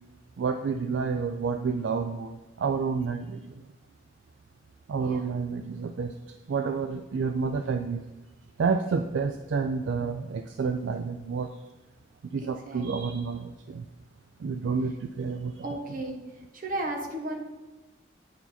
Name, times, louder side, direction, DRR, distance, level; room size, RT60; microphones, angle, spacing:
voice 1, 0.4-3.6 4.9-6.1 6.5-8.0 8.6-11.5 12.3-13.9 14.4-15.6, right 5 dB, 70° right, 8 dB, 0.3 m, -29 dB
voice 2, 5.0-5.3 12.4-13.2 15.6-17.4, right 1 dB, 45° right, 3 dB, 1.1 m, -35 dB
9.3 x 4.6 x 4.2 m, 1.1 s
head